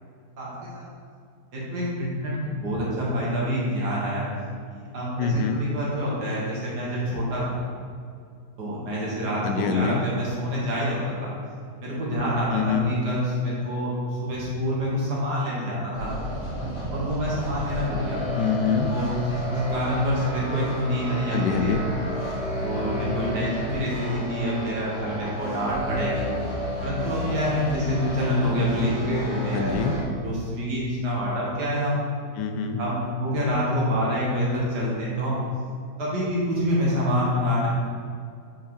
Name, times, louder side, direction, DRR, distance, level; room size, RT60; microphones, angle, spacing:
voice 1, 0.4-0.9 1.5-4.3 4.7-7.6 8.6-11.3 11.8-16.1 16.9-18.2 18.9-21.8 22.6-26.3 26.8-29.8 30.2-32.0 32.8-35.4 36.0-37.7, equal, 80° right, -6 dB, 2.2 m, -27 dB
voice 2, 5.2-5.7 9.4-10.0 12.5-13.0 18.4-18.9 21.3-21.8 29.5-29.9 32.4-32.8, left 7 dB, 85° left, 6 dB, 1.2 m, -25 dB
sound 1, 15.9-30.0, left 1 dB, 55° left, 1.9 m, -31 dB
7.4 x 4.4 x 3.8 m, 2.3 s
omnidirectional pair, 1.8 m